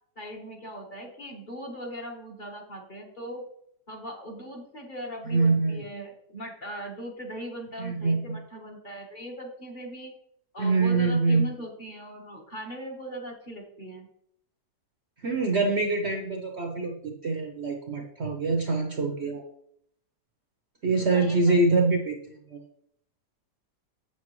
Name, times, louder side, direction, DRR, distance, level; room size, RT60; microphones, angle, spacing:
voice 1, 0.1-3.4 3.9-10.1 10.5-14.1 21.1-21.6, equal, 30° left, 0 dB, 1.4 m, -39 dB
voice 2, 5.3-5.8 7.8-8.4 10.6-11.5 15.2-19.4 20.8-22.2 22.5-22.6, right 3 dB, 50° right, 2 dB, 0.9 m, -25 dB
8.1 x 7.4 x 3.1 m, 0.70 s
omnidirectional pair, 1.8 m